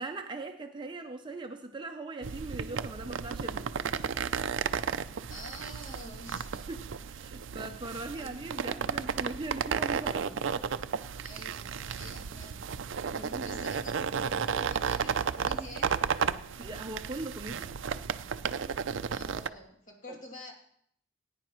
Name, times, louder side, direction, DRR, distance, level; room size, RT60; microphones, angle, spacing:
voice 1, 0.0-3.7 6.7-10.4 13.0-13.7 16.6-17.7 20.1-20.2, right 2 dB, 25° right, 5 dB, 0.6 m, -40 dB
sound 1, 2.2-19.5, right 6 dB, 70° right, 0.4 m, -33 dB
voice 2, 5.3-6.7 8.1-8.3 11.2-12.7 13.2-16.0 19.1-20.5, equal, 40° left, -1 dB, 2.6 m, -47 dB
18.5 x 10.0 x 3.1 m, 0.67 s
head